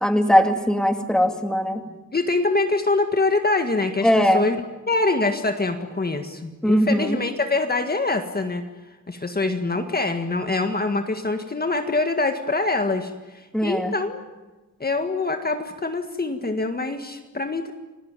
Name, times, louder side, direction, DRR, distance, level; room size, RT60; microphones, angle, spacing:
voice 1, 0.0-1.8 4.0-4.4 6.6-7.2 13.5-13.9, equal, ahead, 5 dB, 2.3 m, -20 dB
voice 2, 2.1-4.6 4.9-8.6 9.1-14.2 14.8-17.7, left 3 dB, 30° left, 5 dB, 1.8 m, -24 dB
30.0 x 19.5 x 9.1 m, 1.2 s
wide cardioid pair, 150°, 32 cm